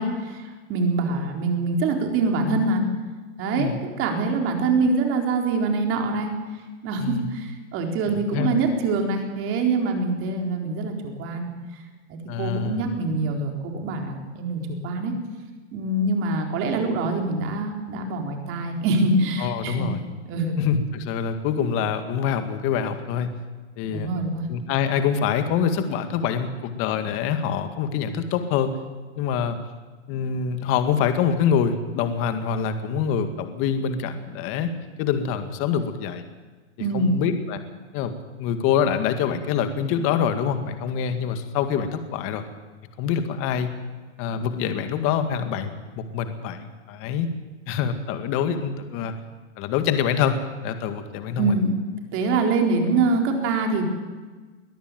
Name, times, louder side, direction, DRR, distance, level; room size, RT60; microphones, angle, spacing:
voice 1, 0.0-2.8 3.4-6.3 6.8-11.5 12.1-15.1 15.7-19.9 20.3-20.6 23.9-24.5 36.8-37.1 51.4-51.8 52.1-53.8, right 3 dB, 35° right, 3 dB, 4.2 m, -24 dB
voice 2, 12.3-12.9 19.4-20.0 20.6-23.3 23.8-24.1 24.5-28.7 29.2-29.6 30.1-34.7 35.0-36.2 36.9-37.6 37.9-42.4 43.0-43.7 44.2-47.3 47.7-49.1 49.6-50.4 50.6-51.5, left 7 dB, 40° left, 8 dB, 2.0 m, -25 dB
22.0 x 14.0 x 9.3 m, 1.3 s
hypercardioid pair, 135°, 35 cm